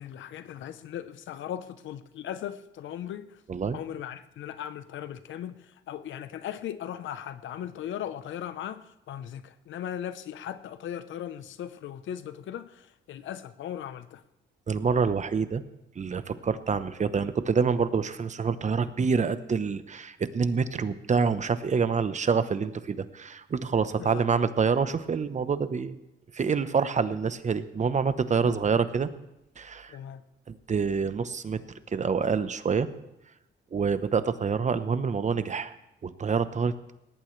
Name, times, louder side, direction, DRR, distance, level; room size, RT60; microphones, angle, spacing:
voice 1, 0.0-3.4 3.7-14.2 24.0-24.2 28.4-28.6 29.9-30.2, left 10 dB, 75° left, 13 dB, 0.9 m, -38 dB
voice 2, 14.7-15.6 16.0-26.0 26.3-29.1 29.6-30.0 30.5-31.6 31.9-32.9 33.7-35.7 36.0-36.7, right 5 dB, 35° right, 12 dB, 1.0 m, -27 dB
19.5 x 17.5 x 3.3 m, 0.90 s
cardioid pair, 90°, 20 cm